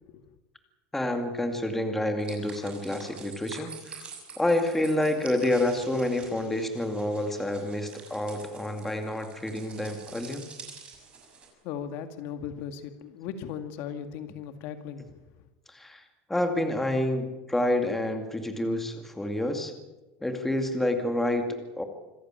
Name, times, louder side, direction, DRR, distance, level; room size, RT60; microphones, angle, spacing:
voice 1, 0.9-4.1 4.4-10.4 15.7-19.7 20.2-21.8, left 1 dB, 5° left, 5 dB, 2.2 m, -28 dB
sound 1, 2.2-11.5, right 5 dB, 25° right, 6.4 m, -47 dB
voice 2, 11.6-15.2, left 8 dB, 55° left, 8 dB, 2.0 m, -37 dB
26.5 x 15.0 x 9.0 m, 1.1 s
cardioid pair, 160°, 5 cm